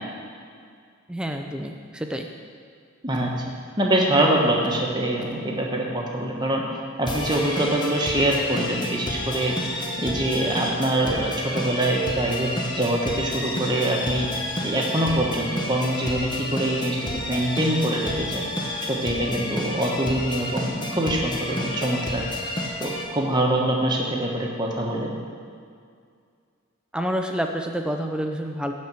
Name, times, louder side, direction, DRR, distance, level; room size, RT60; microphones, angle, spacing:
voice 1, 1.1-2.3 26.9-28.7, equal, 5° right, 4 dB, 0.5 m, -28 dB
voice 2, 3.8-6.6 7.0-9.6 10.0-14.3 14.6-18.5 18.9-22.2 22.8-25.1, right 1 dB, 20° right, -1 dB, 1.1 m, -24 dB
sound 1, 7.0-23.0, left 1 dB, 20° left, 0.9 m, -30 dB
11.5 x 4.3 x 7.7 m, 2.2 s
head